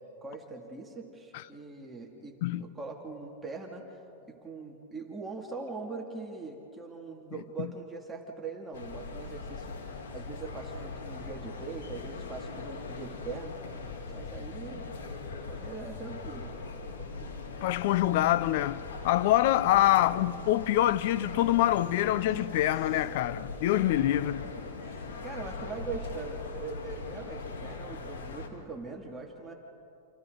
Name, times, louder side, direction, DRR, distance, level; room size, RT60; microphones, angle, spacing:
voice 1, 0.2-4.0 4.3-9.8 10.1-13.5 14.1-15.0 15.4-16.5 17.2-17.3 23.8-23.9 24.6-29.5, right 4 dB, 10° right, 2.6 m, -42 dB
sound 1, 8.7-28.5, left 3 dB, 90° left, 3.2 m, -41 dB
sound 2, 13.8-24.8, right 2 dB, 25° left, 7.4 m, -54 dB
voice 2, 17.6-24.4, left 14 dB, 60° left, 0.7 m, -25 dB
28.5 x 28.0 x 4.0 m
hypercardioid pair, 130°, 0 cm